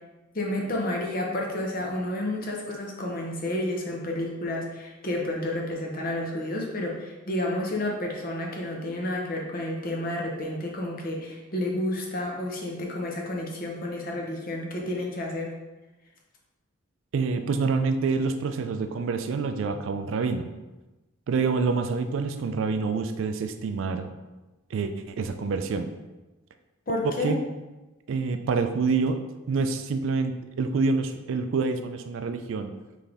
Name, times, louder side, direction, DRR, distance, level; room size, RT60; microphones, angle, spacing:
voice 1, 0.3-15.5 26.9-27.3, left 1 dB, 40° left, -1 dB, 0.7 m, -30 dB
voice 2, 17.1-20.5 21.3-24.1 24.7-25.9 27.2-27.4 28.1-29.2 29.5-32.7, right 4 dB, 65° right, 8 dB, 0.3 m, -27 dB
4.0 x 3.3 x 3.5 m, 1.1 s
head